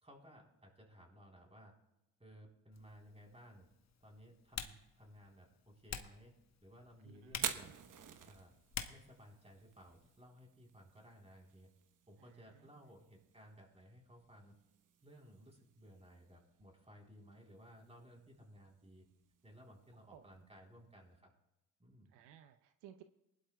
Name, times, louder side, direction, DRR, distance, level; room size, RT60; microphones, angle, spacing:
voice 1, 0.0-1.7 2.2-3.7 4.0-7.7 8.3-8.5 8.9-11.7 12.1-14.6 15.0-19.1 19.4-21.3 21.8-22.1, equal, 15° right, 0 dB, 3.9 m, -59 dB
Typing, 2.7-10.2, left 7 dB, 40° left, 1.1 m, -51 dB
voice 2, 7.0-7.8 12.2-12.7 20.1-20.2 22.1-23.0, right 10 dB, 80° right, 8 dB, 0.7 m, -59 dB
Fire, 7.3-21.2, right 8 dB, 50° right, 1.1 m, -51 dB
20.0 x 11.5 x 2.3 m, 0.90 s
supercardioid pair, 70°, 41 cm